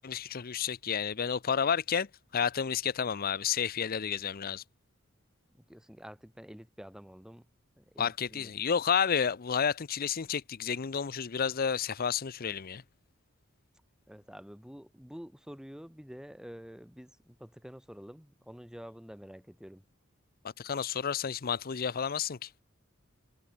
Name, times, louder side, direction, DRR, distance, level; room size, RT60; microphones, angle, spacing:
voice 1, 0.0-2.1 2.3-4.6 8.0-12.8 20.6-22.5, left 7 dB, 45° left, 0.6 m, -31 dB
voice 2, 5.7-7.4 7.8-8.5 14.1-19.8, equal, 5° right, 1.4 m, -48 dB
head